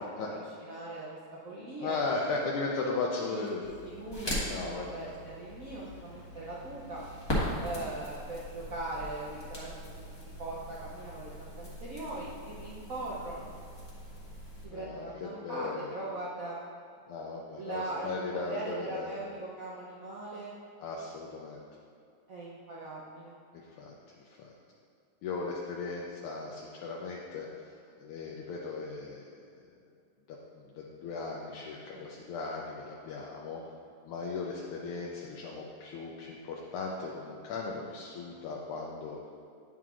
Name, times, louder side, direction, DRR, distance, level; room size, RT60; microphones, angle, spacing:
voice 1, 0.7-1.2 1.4-2.0 3.3-7.0 7.6-10.1 10.4-13.5 14.6-16.6 17.6-20.5 22.3-23.3 31.9-32.1, right 2 dB, 70° right, -6 dB, 0.8 m, -40 dB
voice 2, 1.8-3.6 4.4-5.1 14.7-15.9 17.1-19.2 20.8-21.6 23.8-23.9 24.2-24.5 25.2-27.5 28.0-29.4 30.5-33.6 34.1-39.2, left 3 dB, 80° left, -2 dB, 1.5 m, -37 dB
Crackle, 3.6-14.6, equal, 15° left, 0.9 m, -40 dB
8.9 x 5.7 x 2.4 m, 2.4 s
omnidirectional pair, 2.4 m